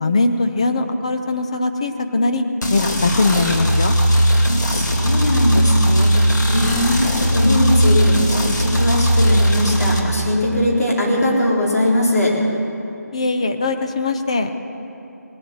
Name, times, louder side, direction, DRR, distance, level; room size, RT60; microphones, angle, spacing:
voice 1, 0.0-2.4 2.7-3.9 13.1-14.5, left 3 dB, 20° left, 6 dB, 0.5 m, -20 dB
sound 1, 2.6-10.0, equal, 85° left, 2.3 m, -17 dB
voice 2, 4.7-6.2 6.5-12.4, left 1 dB, 60° left, -3 dB, 3.9 m, -20 dB
19.0 x 8.4 x 7.7 m, 2.7 s
figure-of-eight pair, 170°, 9 cm